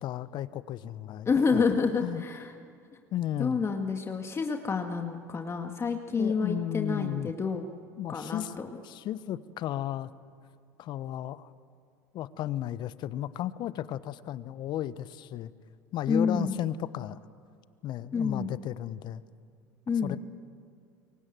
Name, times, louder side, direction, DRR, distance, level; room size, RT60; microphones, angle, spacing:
voice 1, 0.0-1.6 2.0-2.2 3.1-3.6 6.1-7.3 8.0-10.1 10.8-11.5 12.1-15.5 15.9-17.2 17.8-19.2 20.0-20.2, left 12 dB, 50° left, 16 dB, 1.1 m, -34 dB
voice 2, 1.3-2.5 3.4-7.7 8.1-8.7 16.1-16.5 18.1-18.5 19.9-20.2, left 5 dB, 25° left, 4 dB, 2.0 m, -28 dB
28.0 x 23.5 x 7.8 m, 2.4 s
hypercardioid pair, 80°, 10 cm